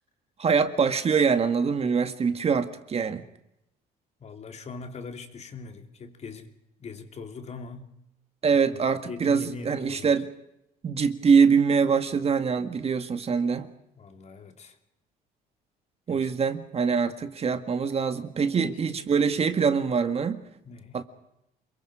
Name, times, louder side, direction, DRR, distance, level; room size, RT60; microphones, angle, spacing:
voice 1, 0.4-3.2 8.4-10.3 10.8-13.7 16.1-20.4 20.9-21.0, right 6 dB, 35° right, 1.8 m, -24 dB
voice 2, 4.2-6.5 6.8-7.9 8.7-10.2 13.9-14.8 16.1-16.3 18.6-19.0 19.4-19.5 20.6-21.0, left 4 dB, 40° left, 3.1 m, -41 dB
28.5 x 23.0 x 5.0 m
cardioid pair, 110°, 17 cm